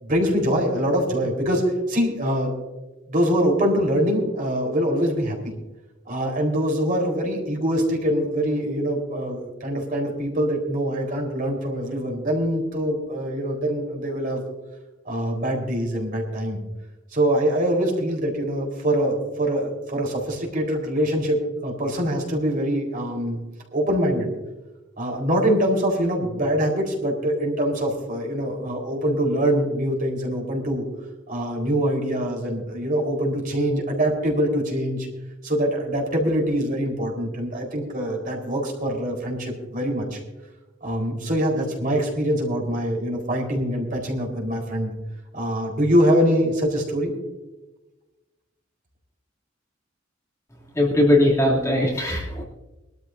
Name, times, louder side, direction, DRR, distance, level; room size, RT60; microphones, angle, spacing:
voice 1, 0.0-2.5 3.1-5.5 6.1-14.4 15.1-16.6 17.1-23.4 23.7-24.4 25.0-30.8 31.3-35.1 35.4-40.2 40.8-44.9 45.3-47.1, equal, 45° right, 1 dB, 4.1 m, -24 dB
voice 2, 50.7-52.4, left 1 dB, 15° left, -4 dB, 2.8 m, -19 dB
23.0 x 13.0 x 2.7 m, 1.1 s
head